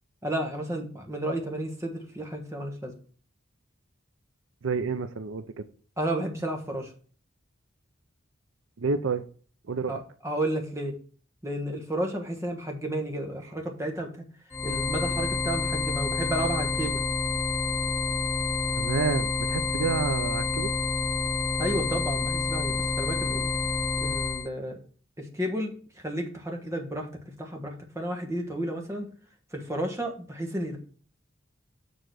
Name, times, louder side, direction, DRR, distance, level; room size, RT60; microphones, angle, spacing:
voice 1, 0.2-2.9 6.0-6.9 9.9-10.9 11.4-14.2 14.6-17.0 21.6-23.5 24.0-24.8 25.2-25.7 26.0-27.1 27.4-29.1 29.5-30.8, right 1 dB, 15° right, 2 dB, 1.3 m, -32 dB
voice 2, 4.6-5.6 8.8-9.2 9.7-10.0 18.8-20.7, right 4 dB, 80° right, 11 dB, 0.5 m, -29 dB
sound 1, 14.5-24.5, left 4 dB, 15° left, 0.5 m, -28 dB
6.8 x 3.9 x 6.2 m, 0.41 s
head